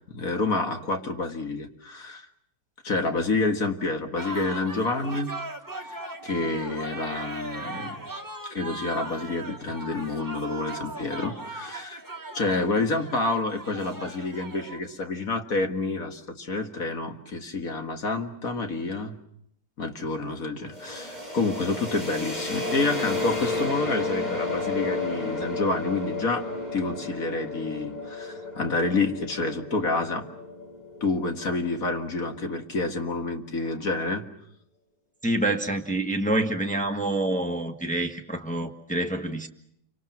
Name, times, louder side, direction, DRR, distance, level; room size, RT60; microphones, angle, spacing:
voice 1, 0.1-2.3 2.8-5.3 5.8-6.0 6.2-8.0 8.4-12.0 12.3-19.1 19.8-26.4 26.7-30.2 31.0-34.2, left 3 dB, 55° left, 2.2 m, -28 dB
sound 1, 4.2-14.8, right 2 dB, 10° right, 1.6 m, -38 dB
sound 2, 20.7-32.4, left 2 dB, 25° left, 6.7 m, -33 dB
voice 2, 35.2-39.5, right 1 dB, 5° left, 1.3 m, -27 dB
28.5 x 25.0 x 6.1 m
omnidirectional pair, 1.8 m